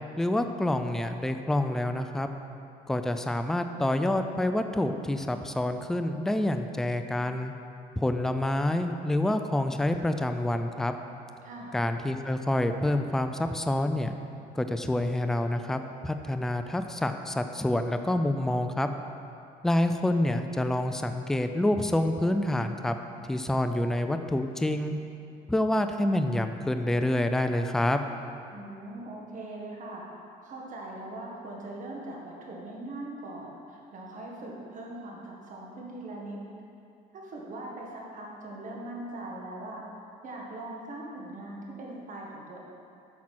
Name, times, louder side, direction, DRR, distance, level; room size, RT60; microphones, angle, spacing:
voice 1, 0.2-2.3 2.9-7.5 8.0-10.9 11.7-14.1 14.6-18.9 19.6-22.9 23.3-24.9 25.5-28.0, left 1 dB, 5° left, 7 dB, 0.4 m, -27 dB
voice 2, 11.4-11.8 28.5-30.1 30.4-36.4 37.1-39.8 40.2-42.6, right 2 dB, 50° right, -2 dB, 1.7 m, -41 dB
8.6 x 6.0 x 4.2 m, 2.6 s
cardioid pair, 110°, 17 cm